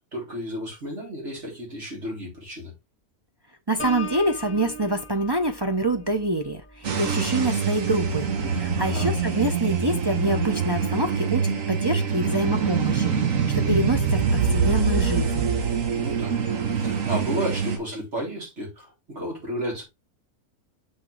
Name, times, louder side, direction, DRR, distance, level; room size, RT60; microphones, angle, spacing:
voice 1, 0.1-2.7 8.8-9.1 15.9-16.4 16.7-19.8, equal, 50° right, 4.2 m, -32 dB
voice 2, 3.7-6.6 7.0-13.1 13.6-15.5, right 1 dB, 25° right, 0.5 m, -26 dB
Piano, 3.8-9.4 9.9-10.2, equal, 10° left, 1.6 m, -41 dB
sound 1, 6.8-17.8, right 6 dB, 65° right, 1.6 m, -24 dB
6.4 x 6.1 x 3.3 m
omnidirectional pair, 1.5 m